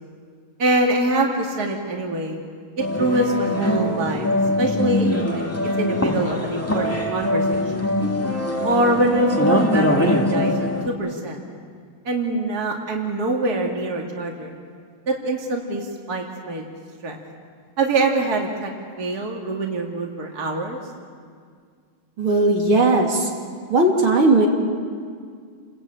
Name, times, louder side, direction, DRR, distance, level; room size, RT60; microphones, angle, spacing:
voice 1, 0.6-2.4 2.8-5.4 5.8-7.9 8.6-11.4 12.0-14.5 15.1-16.6 17.0-17.2 17.8-18.7 19.0-20.8, right 2 dB, 45° right, 1 dB, 2.8 m, -24 dB
sound 1, 2.8-10.9, left 1 dB, 5° left, 1.7 m, -22 dB
voice 2, 22.2-23.3 23.7-24.5, right 2 dB, 75° right, 0 dB, 3.9 m, -17 dB
30.0 x 22.0 x 9.0 m, 2.1 s
omnidirectional pair, 2.3 m